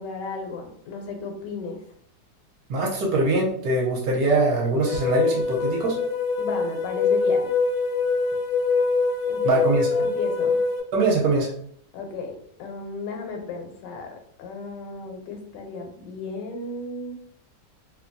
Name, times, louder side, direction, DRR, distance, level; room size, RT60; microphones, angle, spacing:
voice 1, 0.0-1.8 6.4-7.5 9.3-9.6 9.9-10.6 11.9-17.1, left 3 dB, 90° left, 3 dB, 1.2 m, -34 dB
voice 2, 2.7-6.0 9.4-9.9 10.9-11.5, right 2 dB, 65° right, -3 dB, 1.0 m, -22 dB
sound 1, 4.8-10.8, left 4 dB, 75° left, 0.7 m, -24 dB
2.9 x 2.2 x 2.5 m, 0.66 s
omnidirectional pair, 1.8 m